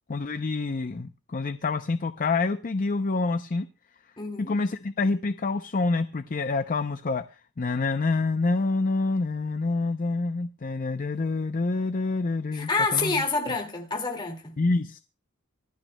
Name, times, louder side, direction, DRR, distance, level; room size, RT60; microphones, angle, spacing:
voice 1, 0.1-3.7 4.4-13.6 14.6-15.0, left 3 dB, 40° left, 0.5 m, -27 dB
voice 2, 4.2-4.5 12.5-14.6, left 3 dB, 20° left, 2.1 m, -28 dB
25.0 x 9.0 x 2.2 m
head